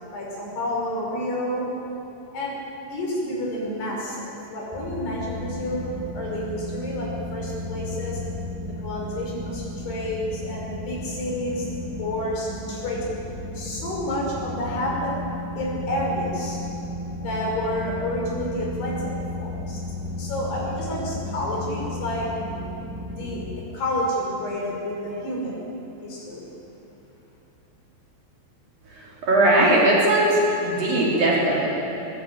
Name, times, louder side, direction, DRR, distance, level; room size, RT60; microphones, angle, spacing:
voice 1, 0.1-1.7 2.3-2.6 2.9-8.2 8.8-11.7 12.0-13.1 13.5-15.2 15.6-16.6 17.2-19.1 19.4-19.8 20.2-22.3 23.1-23.4 23.7-25.7 26.0-26.6, left 1 dB, 70° left, -2 dB, 7.4 m, -29 dB
sound 1, 4.7-23.6, left 1 dB, 25° right, 0.5 m, -34 dB
voice 2, 29.0-31.7, right 1 dB, 55° right, -5 dB, 5.4 m, -19 dB
22.0 x 20.5 x 8.9 m, 3.0 s
omnidirectional pair, 4.9 m